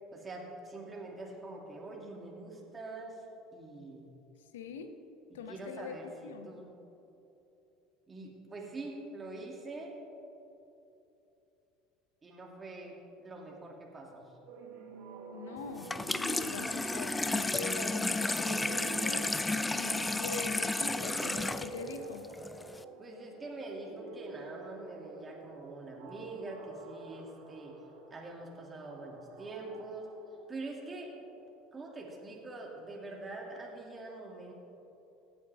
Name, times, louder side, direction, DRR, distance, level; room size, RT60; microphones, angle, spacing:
voice 1, 0.1-3.2 3.5-4.1 5.5-6.8 8.1-9.9 12.2-14.4 23.0-27.8 28.1-30.1 30.5-31.2 31.7-34.5, right 2 dB, 25° right, -1 dB, 2.3 m, -44 dB
voice 2, 4.5-4.9 5.3-6.0 6.2-6.5 15.3-19.3 19.7-22.3, left 5 dB, 80° left, 8 dB, 0.8 m, -43 dB
sound 1, 14.4-30.8, right 4 dB, 70° right, 1.2 m, -48 dB
Water tap faucet / Sink (filling or washing), 15.8-22.8, left 2 dB, 15° left, 0.4 m, -33 dB
15.5 x 8.7 x 3.5 m, 2.9 s
hypercardioid pair, 75°, 0 cm